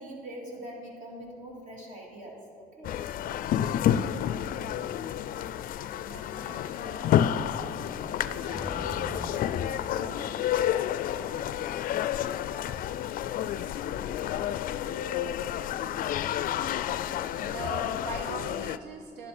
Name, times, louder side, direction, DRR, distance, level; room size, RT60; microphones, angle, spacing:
voice 1, 0.0-3.0 7.9-10.3 11.2-11.4 13.0-13.1, right 1 dB, 50° right, -2 dB, 2.9 m, -44 dB
sound 1, 2.8-18.8, left 10 dB, 55° left, 0.4 m, -30 dB
voice 2, 6.1-7.2 17.5-19.3, right 5 dB, 80° right, 6 dB, 0.7 m, -41 dB
sound 2, 8.4-10.6, left 1 dB, 5° right, 1.1 m, -42 dB
11.5 x 10.5 x 4.3 m, 2.6 s
cardioid pair, 110°, 17 cm